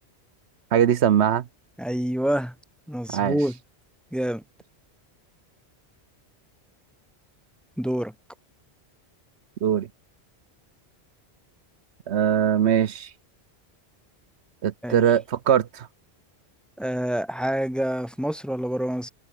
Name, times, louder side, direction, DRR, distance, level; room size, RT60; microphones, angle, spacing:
voice 1, 0.7-1.4 3.1-3.4 9.6-9.9 12.1-13.1 14.6-15.9, right 9 dB, 80° right, 1.1 m, -21 dB
voice 2, 1.8-2.5 2.9-3.6 4.1-4.4 7.8-8.1 14.8-15.0 16.8-19.1, equal, ahead, 1.9 m, -27 dB
omnidirectional pair, 1.1 m